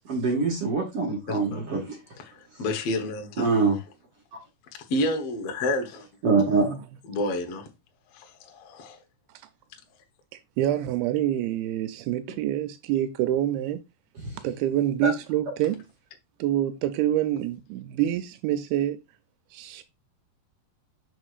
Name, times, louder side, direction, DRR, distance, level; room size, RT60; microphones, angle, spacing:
voice 1, 0.1-2.0 3.4-3.8 6.2-6.7 14.2-14.3 15.0-15.1, right 4 dB, 50° right, 1.9 m, -24 dB
voice 2, 1.3-1.6 2.2-3.5 4.9-6.1 7.1-7.7 8.1-9.0, left 1 dB, 65° left, 1.5 m, -30 dB
voice 3, 10.6-13.8 14.4-15.8 16.4-19.0 19.5-19.8, right 12 dB, 85° right, 2.5 m, -26 dB
6.2 x 6.2 x 2.4 m
omnidirectional pair, 4.3 m